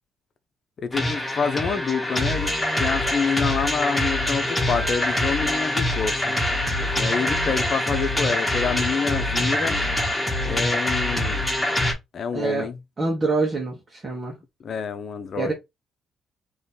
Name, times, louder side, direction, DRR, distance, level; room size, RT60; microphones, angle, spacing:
voice 1, 0.8-6.4 7.0-9.8 10.4-11.5 12.1-12.8 14.6-15.5, left 6 dB, 55° left, 0.9 m, -27 dB
sound 1, 0.9-11.9, left 1 dB, 10° left, 2.2 m, -24 dB
voice 2, 12.3-12.7 13.0-14.3 15.4-15.5, right 3 dB, 30° right, 1.8 m, -25 dB
3.9 x 3.2 x 3.9 m
cardioid pair, 90°, 0 cm